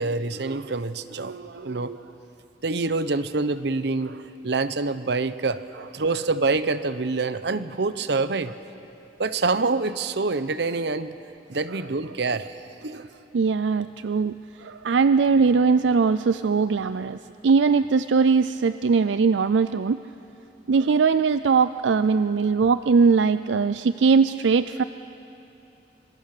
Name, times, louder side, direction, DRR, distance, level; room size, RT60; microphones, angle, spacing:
voice 1, 0.0-2.0 2.6-4.1 4.4-5.6 5.9-8.5 9.2-11.2 11.5-12.6 12.8-13.1, right 3 dB, 65° right, 13 dB, 0.9 m, -26 dB
voice 2, 13.3-17.2 17.4-20.0 20.7-24.8, right 5 dB, 85° right, 13 dB, 0.4 m, -20 dB
25.0 x 24.5 x 6.7 m, 2.9 s
head